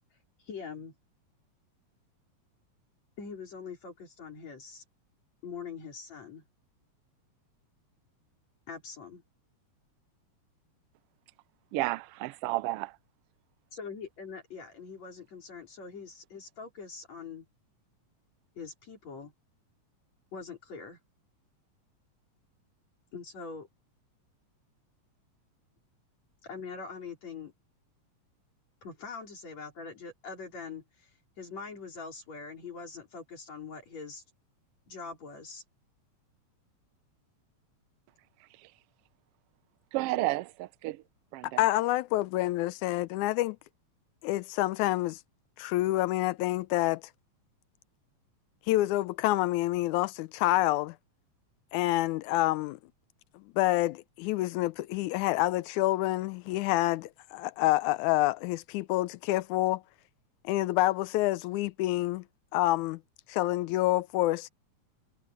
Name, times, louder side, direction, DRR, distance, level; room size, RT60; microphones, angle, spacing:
voice 1, 0.4-0.9 3.2-4.8 5.4-6.4 8.7-9.2 13.7-17.5 18.6-19.3 20.3-21.0 23.1-23.7 26.4-27.5 28.8-31.1 31.4-34.2 34.9-35.6, left 5 dB, 65° left, 5.5 m, -43 dB
voice 2, 11.7-13.0 38.4-38.7 39.9-41.0 41.3-41.6, right 18 dB, 90° right, 1.3 m, -32 dB
voice 3, 41.6-43.6 44.2-45.2 45.6-47.0 48.7-51.0 51.7-52.8 53.3-59.8 60.4-62.2 62.5-63.0 63.3-64.5, left 17 dB, 90° left, 2.0 m, -27 dB
omnidirectional pair, 3.4 m